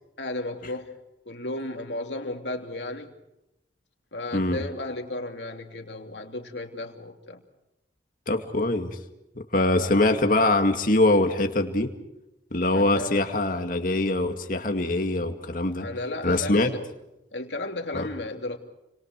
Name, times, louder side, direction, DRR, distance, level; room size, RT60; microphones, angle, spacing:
voice 1, 0.2-1.0 1.2-3.1 4.1-7.4 9.8-10.2 12.7-13.3 15.8-16.8 17.3-18.6, left 2 dB, 75° left, 4 dB, 3.0 m, -34 dB
voice 2, 4.3-4.6 8.3-9.0 9.4-11.9 12.5-15.9 16.2-16.7 17.9-18.1, left 2 dB, 50° left, 5 dB, 2.2 m, -23 dB
29.5 x 26.0 x 4.7 m, 0.90 s
head